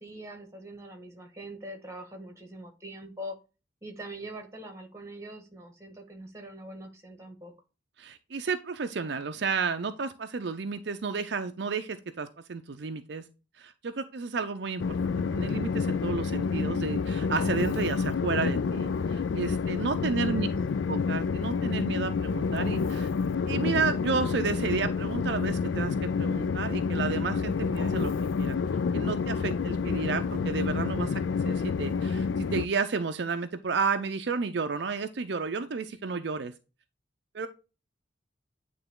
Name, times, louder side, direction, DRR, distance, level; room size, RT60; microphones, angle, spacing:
voice 1, 0.0-3.4 3.8-7.5 20.0-20.6, right 1 dB, 15° right, 4 dB, 1.4 m, -43 dB
voice 2, 8.0-13.2 13.6-20.5 20.9-23.1 23.5-28.1 28.4-28.6 28.9-36.5 37.3-37.5, right 4 dB, 60° right, 8 dB, 0.5 m, -32 dB
Train, 14.8-32.7, left 5 dB, 75° left, 0.3 m, -28 dB
9.0 x 3.4 x 3.7 m, 0.30 s
head